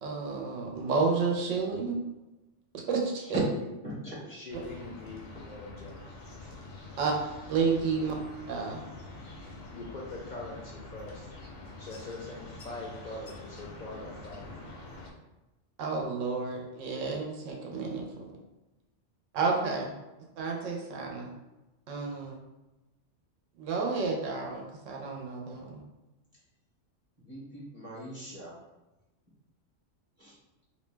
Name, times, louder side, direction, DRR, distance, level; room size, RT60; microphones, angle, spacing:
voice 1, 0.0-2.0 2.9-3.4 7.0-7.1 7.5-8.2 8.5-8.8 15.8-18.3 19.3-19.9 20.4-21.3 21.9-22.3 23.6-25.8, right 4 dB, 90° right, 0 dB, 1.0 m, -31 dB
voice 2, 3.2-3.7 4.0-6.0 9.7-14.6, left 2 dB, 65° left, -4 dB, 0.4 m, -43 dB
voice 3, 3.8-4.2 27.2-28.6 30.2-30.4, left 1 dB, 35° right, -7 dB, 0.7 m, -40 dB
sound 1, 4.5-15.1, left 2 dB, 85° left, 1.1 m, -46 dB
2.6 x 2.1 x 3.2 m, 1.0 s
omnidirectional pair, 1.3 m